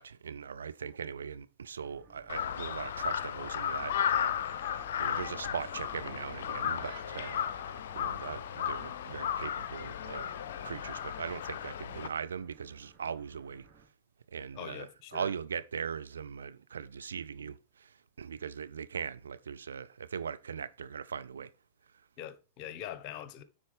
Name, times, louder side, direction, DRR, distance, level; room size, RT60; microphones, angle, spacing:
voice 1, 0.0-10.3 10.6-13.6 14.3-17.6 18.2-21.5, right 6 dB, 75° right, 0.5 m, -40 dB
sound 1, 1.8-13.9, right 4 dB, 40° right, 2.1 m, -59 dB
Crow, 2.3-12.1, left 9 dB, 60° left, 0.5 m, -35 dB
sound 2, 5.3-9.7, right 9 dB, 60° right, 1.3 m, -58 dB
voice 2, 14.5-15.3 22.2-23.4, left 10 dB, 45° left, 1.0 m, -43 dB
9.7 x 4.2 x 5.0 m
figure-of-eight pair, 95°, 0 cm